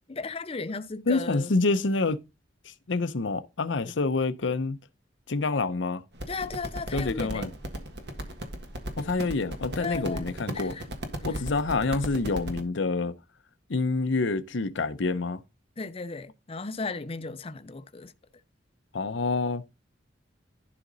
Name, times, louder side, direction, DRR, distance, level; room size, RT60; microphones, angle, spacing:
voice 1, 0.1-1.6 3.8-4.1 6.3-7.6 9.8-10.3 10.5-10.9 11.3-11.4 15.8-18.1, left 4 dB, 30° left, 0.6 m, -36 dB
voice 2, 1.1-2.2 2.7-4.8 5.3-6.0 6.9-7.5 9.0-10.7 11.2-13.1 13.7-15.4 18.9-19.6, left 3 dB, 85° left, 0.7 m, -27 dB
sound 1, 6.1-12.6, right 1 dB, 60° right, 1.6 m, -36 dB
11.5 x 5.0 x 4.0 m
head